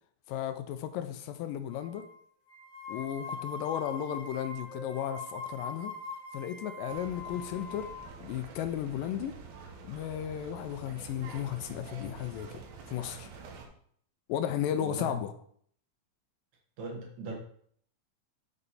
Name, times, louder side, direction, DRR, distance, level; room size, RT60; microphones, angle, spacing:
voice 1, 0.3-2.1 2.9-5.9 6.3-7.9 8.2-9.4 9.9-12.6 12.9-13.3 14.3-15.3, left 10 dB, 80° left, 9 dB, 2.1 m, -34 dB
sound 1, 1.7-2.1 2.5-8.1, left 3 dB, 50° left, 2.6 m, -42 dB
sound 2, 6.9-13.6, right 4 dB, 85° right, 3.1 m, -47 dB
voice 2, 14.8-15.2 16.8-17.4, right 2 dB, 65° right, 1 dB, 2.2 m, -39 dB
8.2 x 5.4 x 4.2 m, 0.62 s
omnidirectional pair, 4.1 m